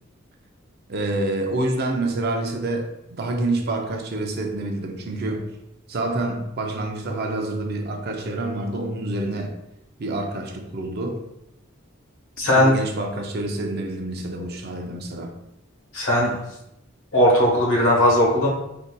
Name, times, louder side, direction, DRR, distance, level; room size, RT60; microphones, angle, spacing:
voice 1, 0.9-5.5 5.9-9.6 10.0-11.3 12.5-15.3, right 2 dB, 50° right, 0.5 m, -27 dB
voice 2, 12.4-12.7 15.9-16.4 17.1-18.5, left 1 dB, 75° left, 1.2 m, -18 dB
3.8 x 2.7 x 2.2 m
head